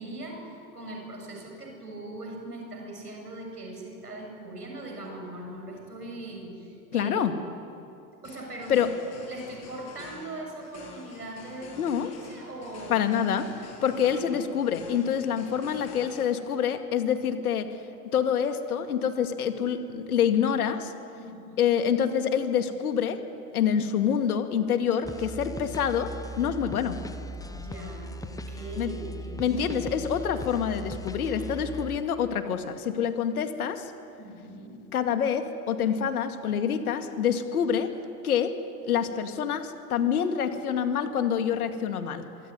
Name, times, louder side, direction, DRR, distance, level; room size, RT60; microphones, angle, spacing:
voice 1, 0.0-7.3 8.2-8.9 9.3-13.0 14.1-14.4 21.2-21.7 27.5-29.9 34.2-34.8, right 2 dB, 85° right, 1 dB, 7.3 m, -40 dB
voice 2, 6.9-7.3 8.7-8.9 11.8-12.1 12.9-17.7 18.1-20.9 21.6-23.2 23.5-26.1 26.4-27.0 28.8-28.9 29.4-33.9 34.9-37.9 38.2-38.6 38.8-42.3, left 8 dB, 70° left, 8 dB, 2.3 m, -26 dB
sound 1, 8.2-16.3, left 4 dB, 35° left, 7.4 m, -47 dB
sound 2, 25.0-32.0, equal, 10° left, 1.2 m, -38 dB
26.0 x 23.5 x 9.7 m, 2.6 s
figure-of-eight pair, 90°, 45 cm